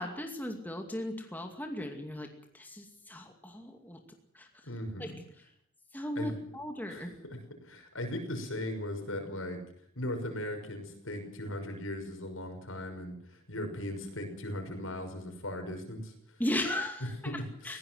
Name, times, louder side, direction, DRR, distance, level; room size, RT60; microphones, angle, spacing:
voice 1, 0.0-4.0 4.3-4.5 5.0-5.1 5.9-7.2 16.4-17.8, left 1 dB, 10° left, 3 dB, 2.4 m, -37 dB
voice 2, 4.7-5.2 6.2-6.4 6.9-9.6 10.0-16.4 17.2-17.4 17.6-17.8, left 1 dB, 75° left, 5 dB, 6.1 m, -38 dB
20.5 x 17.5 x 7.9 m, 0.64 s
head